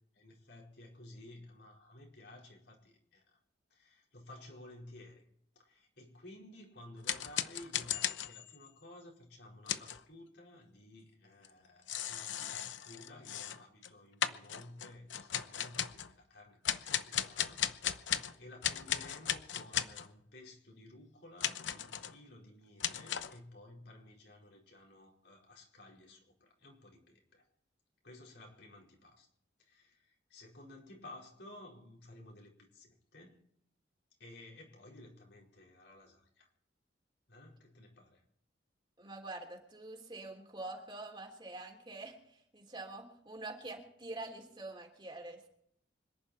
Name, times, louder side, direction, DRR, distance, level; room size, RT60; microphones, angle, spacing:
voice 1, 0.0-3.4 3.7-5.2 5.5-27.4 28.0-29.3 29.6-33.4 34.2-36.5 37.3-38.2, left 1 dB, 70° left, -1 dB, 4.8 m, -55 dB
sound 1, 7.0-8.7 9.7-10.0 11.4-11.5 11.9-13.9 14.2-16.1 16.6-18.3 18.6-20.1 21.4-22.1 22.8-23.4, left 10 dB, 90° left, 0.8 m, -36 dB
voice 2, 39.0-45.5, right 2 dB, 25° right, 2 dB, 3.3 m, -46 dB
26.0 x 11.0 x 4.4 m, 0.72 s
head